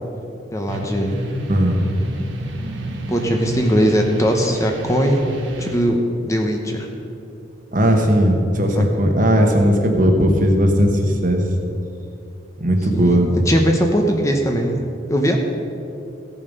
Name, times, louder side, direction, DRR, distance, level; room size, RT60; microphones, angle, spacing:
voice 1, 0.5-1.2 3.1-5.2 5.6-6.9 12.9-13.2 13.5-14.8 15.1-15.4, equal, 15° left, 2 dB, 0.9 m, -19 dB
sound 1, 0.7-5.8, equal, 85° right, 1.4 m, -29 dB
voice 2, 1.5-1.8 7.7-11.4 12.6-13.3, equal, 45° right, 3 dB, 1.3 m, -17 dB
15.5 x 7.1 x 5.3 m, 2.6 s
head